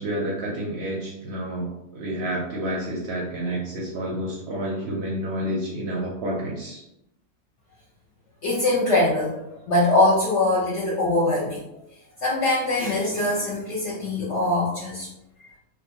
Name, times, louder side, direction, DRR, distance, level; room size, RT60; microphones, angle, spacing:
voice 1, 0.0-6.8, right 1 dB, 65° right, -3 dB, 0.7 m, -29 dB
voice 2, 8.4-9.4 9.7-11.6 12.2-15.1, left 2 dB, 60° left, -6 dB, 0.8 m, -22 dB
2.5 x 2.4 x 2.7 m, 0.84 s
omnidirectional pair, 1.5 m